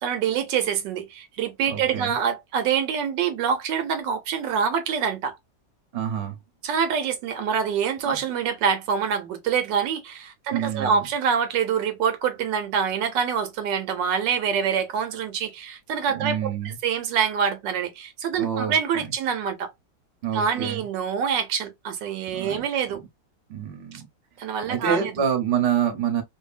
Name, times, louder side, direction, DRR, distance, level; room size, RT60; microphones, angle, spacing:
voice 1, 0.0-5.4 6.6-16.5 16.8-19.7 20.3-23.0 24.4-25.2, right 7 dB, 80° right, 1.2 m, -25 dB
voice 2, 1.7-2.1 5.9-6.4 8.1-8.2 10.5-11.0 16.1-16.8 18.4-18.8 20.2-20.8 22.3-22.6 23.5-24.1 24.7-26.2, right 8 dB, 45° right, 0.9 m, -27 dB
2.7 x 2.5 x 2.3 m
omnidirectional pair, 2.0 m